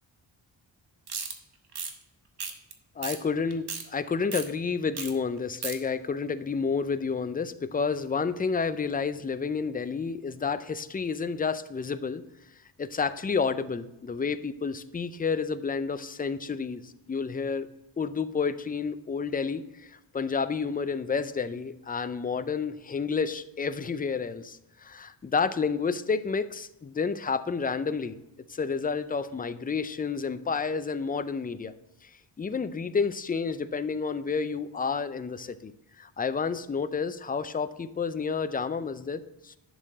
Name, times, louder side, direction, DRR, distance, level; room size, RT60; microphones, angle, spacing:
sound 1, 1.1-1.3 1.7-1.9 2.4-2.7 3.0-3.2 3.5-3.8 4.3-4.5 4.9-5.1 5.4-5.8, right 5 dB, 55° right, 1.1 m, -34 dB
voice 1, 3.0-12.2 12.8-17.7 18.0-28.2 28.5-31.7 32.0-32.1 32.4-39.6, left 5 dB, 20° left, 12 dB, 0.3 m, -30 dB
11.0 x 6.6 x 3.9 m, 0.91 s
wide cardioid pair, 155°, 46 cm